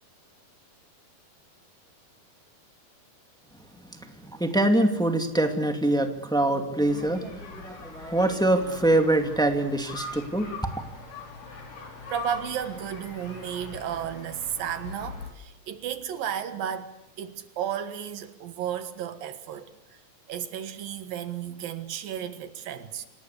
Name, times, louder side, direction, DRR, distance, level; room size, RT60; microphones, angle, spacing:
voice 1, 4.0-10.5, right 1 dB, ahead, 1.5 m, -24 dB
sound 1, 6.8-15.3, left 4 dB, 70° left, 6.2 m, -42 dB
voice 2, 12.1-19.7 20.3-23.1, right 9 dB, 85° right, 3.3 m, -33 dB
27.5 x 19.0 x 8.5 m
omnidirectional pair, 4.0 m